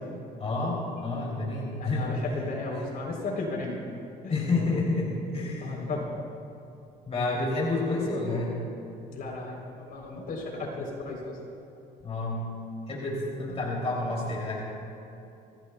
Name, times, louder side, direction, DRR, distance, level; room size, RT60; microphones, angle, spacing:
voice 1, 0.4-2.2 4.2-5.8 7.1-8.6 12.0-12.4 12.9-14.6, left 2 dB, 35° left, -3 dB, 3.2 m, -29 dB
voice 2, 1.8-3.8 4.2-4.4 5.6-6.1 9.1-11.4 13.5-13.6, left 3 dB, 60° left, 0 dB, 3.8 m, -35 dB
26.0 x 17.0 x 2.4 m, 2.8 s
cardioid pair, 110°, 17 cm